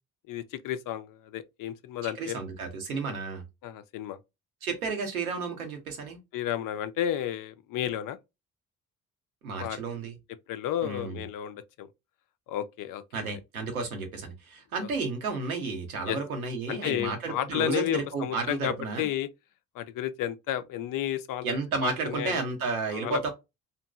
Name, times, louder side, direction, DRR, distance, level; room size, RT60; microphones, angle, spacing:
voice 1, 0.3-2.4 3.6-4.2 6.3-8.2 9.6-9.8 10.5-11.9 12.5-13.0 14.8-14.9 16.1-16.2 16.7-19.3 19.7-22.4 22.9-23.3, left 11 dB, 50° left, 0.5 m, -32 dB
voice 2, 2.0-3.4 4.6-6.2 9.4-10.1 10.8-11.2 13.1-19.1 21.4-23.3, right 4 dB, 90° right, 0.8 m, -32 dB
2.8 x 2.5 x 2.2 m
hypercardioid pair, 45°, 42 cm